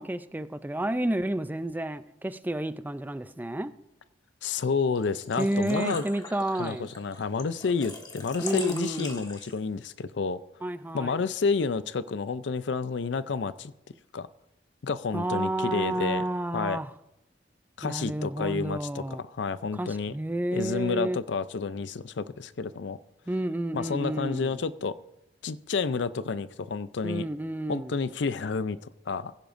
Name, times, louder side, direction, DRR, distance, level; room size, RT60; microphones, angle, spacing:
voice 1, 0.0-3.7 5.4-6.9 8.4-9.2 10.6-11.2 15.1-16.9 17.8-19.2 19.7-21.2 23.3-24.5 27.0-27.9, right 1 dB, 10° right, 11 dB, 0.4 m, -30 dB
voice 2, 4.4-6.0 6.6-10.4 10.9-13.7 14.1-14.3 14.8-16.2 16.5-16.8 17.8-20.1 20.5-23.0 23.7-25.0 25.4-27.3 27.7-29.3, left 5 dB, 70° left, 15 dB, 0.5 m, -30 dB
Engine / Trickle dribble / Fill (with liquid), 4.9-9.8, left 3 dB, 25° left, 1.5 m, -41 dB
17.0 x 15.5 x 2.6 m, 0.89 s
head